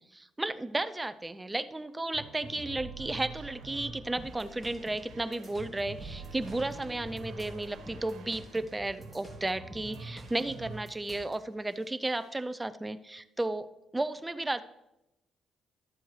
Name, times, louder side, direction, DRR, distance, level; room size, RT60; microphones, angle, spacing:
voice 1, 0.0-13.7 13.9-14.6, right 2 dB, 15° right, 13 dB, 0.5 m, -34 dB
sound 1, 2.1-11.3 11.6-12.4, right 3 dB, 80° right, 1.3 m, -46 dB
sound 2, 4.2-11.4, equal, 5° left, 2.1 m, -50 dB
12.0 x 7.5 x 3.2 m, 0.91 s
cardioid pair, 90°, 0 cm